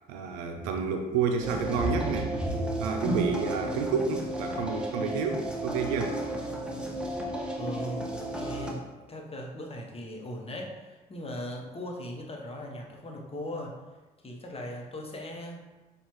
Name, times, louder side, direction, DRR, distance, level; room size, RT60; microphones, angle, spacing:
voice 1, 0.1-2.3 2.8-6.2, right 6 dB, 85° right, 4 dB, 0.5 m, -30 dB
sound 1, 1.4-8.7, right 1 dB, 5° right, 0.9 m, -32 dB
voice 2, 7.5-13.7 14.2-15.8, equal, 30° left, 0 dB, 1.0 m, -39 dB
6.9 x 2.4 x 3.1 m, 1.2 s
hypercardioid pair, 50°, 20 cm